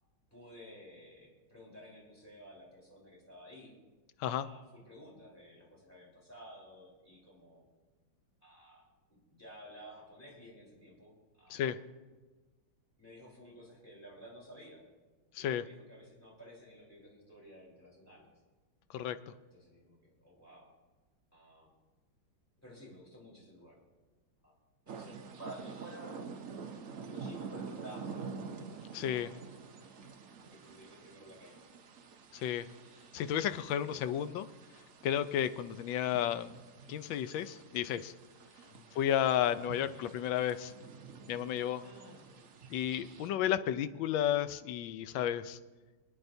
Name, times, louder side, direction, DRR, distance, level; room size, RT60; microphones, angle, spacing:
voice 1, 0.3-3.8 4.4-7.6 8.4-11.7 13.0-14.8 15.4-18.3 19.5-20.7 21.3-21.7 22.6-23.8 24.4-24.6 24.9-26.2 26.9-28.4 29.1-29.9 30.5-31.7 35.4-35.7 38.7-38.9 39.8-40.1 41.8-42.5 45.0-45.3, equal, 5° left, -4 dB, 3.8 m, -53 dB
voice 2, 18.9-19.3 28.9-29.3 32.3-32.7 33.1-34.5 35.0-36.6 36.9-38.1 38.9-40.7 41.3-41.8 42.7-45.6, left 10 dB, 80° left, 12 dB, 1.3 m, -32 dB
sound 1, 24.9-43.3, right 5 dB, 55° right, 0.9 m, -48 dB
25.5 x 9.3 x 2.7 m, 1.3 s
omnidirectional pair, 2.2 m